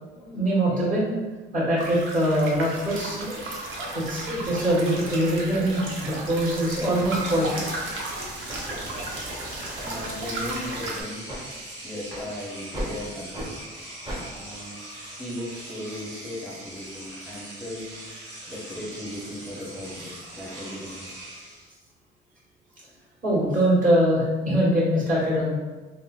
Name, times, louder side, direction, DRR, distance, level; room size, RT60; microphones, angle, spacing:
voice 1, 0.1-1.1 1.5-3.3 3.9-7.6 23.2-25.5, right 1 dB, 40° right, -6 dB, 1.3 m, -23 dB
sound 1, 1.8-11.0, right 2 dB, 85° right, 0.6 m, -35 dB
sound 2, 5.3-5.5 6.2-6.5 6.8-10.2 10.7-10.8 11.3-11.4 12.1-12.3 12.7-12.9 13.3-13.5 14.1-14.2, equal, 20° right, 0.9 m, -38 dB
Engine / Domestic sounds home sounds, 6.6-6.7 7.0-21.7, right 1 dB, 60° right, 1.2 m, -42 dB
voice 2, 9.8-11.3 11.8-13.5 14.4-14.8 15.2-18.0 18.5-21.3, left 1 dB, 5° left, -6 dB, 0.7 m, -37 dB
3.6 x 2.0 x 2.4 m, 1.2 s
cardioid pair, 90°, 20 cm